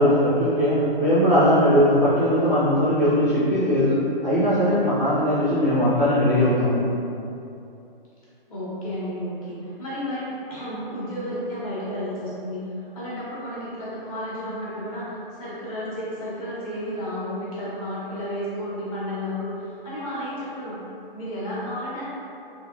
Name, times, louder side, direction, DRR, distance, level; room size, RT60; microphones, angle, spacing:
voice 1, 0.0-4.0 4.2-6.8, equal, 10° right, -13 dB, 0.3 m, -19 dB
voice 2, 8.5-20.8 21.1-22.0, equal, 35° left, -9 dB, 1.2 m, -32 dB
3.2 x 2.9 x 2.5 m, 2.7 s
hypercardioid pair, 150°, 29 cm